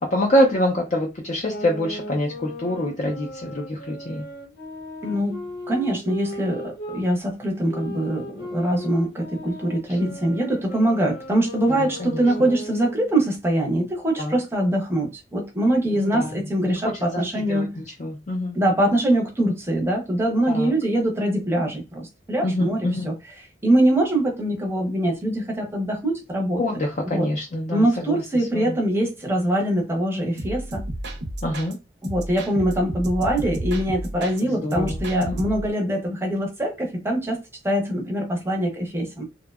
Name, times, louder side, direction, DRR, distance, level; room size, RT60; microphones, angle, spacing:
voice 1, 0.0-4.3 9.9-10.2 11.7-12.2 14.2-14.4 15.9-18.6 20.5-20.7 22.4-23.1 26.6-28.8 31.4-31.8 34.5-35.4, left 1 dB, 40° left, 0.4 m, -26 dB
sound 1, 1.5-7.0 7.7-13.2, left 1 dB, 65° left, 0.8 m, -37 dB
voice 2, 5.0-17.8 18.5-23.1 23.6-26.6 27.0-27.3 27.7-30.8 32.0-39.3, right 1 dB, 15° right, 0.6 m, -23 dB
sound 2, 30.4-31.7 32.0-34.4 34.7-35.7, right 1 dB, 65° right, 0.5 m, -32 dB
2.7 x 2.1 x 2.2 m
head